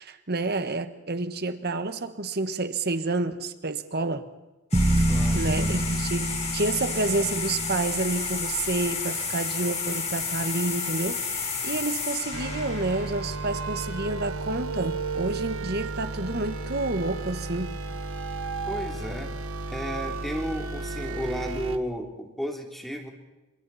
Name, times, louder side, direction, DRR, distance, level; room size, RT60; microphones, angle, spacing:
voice 1, 0.0-4.3 5.3-17.7, right 2 dB, 45° right, 9 dB, 1.5 m, -29 dB
sound 1, 4.7-13.9, left 4 dB, 30° left, 4.0 m, -32 dB
sound 2, 4.7-8.9, right 1 dB, 20° right, 0.7 m, -27 dB
voice 2, 5.1-5.9 18.7-19.3 19.7-23.1, equal, ahead, 1 dB, 3.4 m, -33 dB
sound 3, 12.3-21.8, right 3 dB, 65° right, 1.6 m, -33 dB
29.5 x 27.5 x 4.3 m, 1.1 s
head